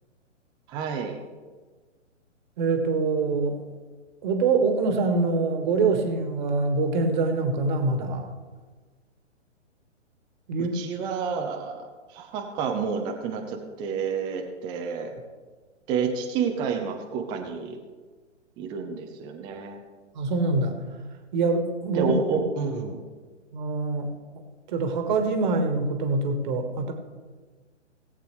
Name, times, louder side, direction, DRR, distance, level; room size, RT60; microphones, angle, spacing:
voice 1, 0.7-1.2 10.7-15.1 15.9-17.8 18.6-19.8 21.9-23.0, right 6 dB, 10° right, 3 dB, 0.6 m, -29 dB
voice 2, 2.6-3.5 4.2-8.3 10.5-10.7 20.1-20.7 21.3-22.1 23.5-24.1 24.7-26.9, right 3 dB, 40° right, 5 dB, 1.7 m, -24 dB
18.5 x 8.3 x 3.2 m, 1.4 s
figure-of-eight pair, 125°, 37 cm